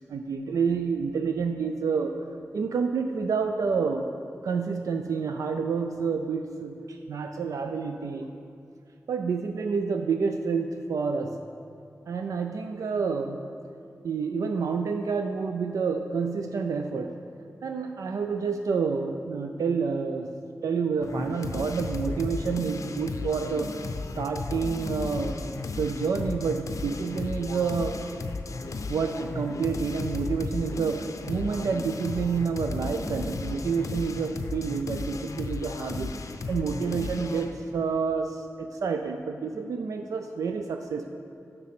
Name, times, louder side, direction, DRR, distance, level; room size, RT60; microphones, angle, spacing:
voice 1, 0.1-2.1 2.5-4.1 4.4-8.3 9.1-11.4 12.1-13.5 14.0-17.2 17.6-20.3 20.6-23.8 24.2-25.4 25.8-28.0 28.9-36.1 36.5-41.1, right 5 dB, 85° right, 6 dB, 0.4 m, -28 dB
sound 1, 21.0-37.5, left 3 dB, 75° left, 0.5 m, -35 dB
7.2 x 6.7 x 5.8 m, 2.5 s
wide cardioid pair, 70°, 6 cm